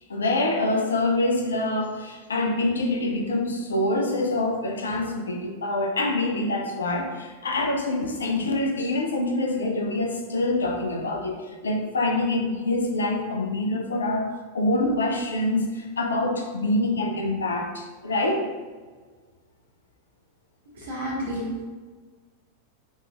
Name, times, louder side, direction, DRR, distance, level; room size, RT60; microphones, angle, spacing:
voice 1, 0.1-11.4 11.6-18.5, left 2 dB, 70° left, 2 dB, 0.6 m, -25 dB
voice 2, 20.6-21.6, equal, 65° right, -4 dB, 1.3 m, -31 dB
5.2 x 3.1 x 2.4 m, 1.5 s
figure-of-eight pair, 90°, 0 cm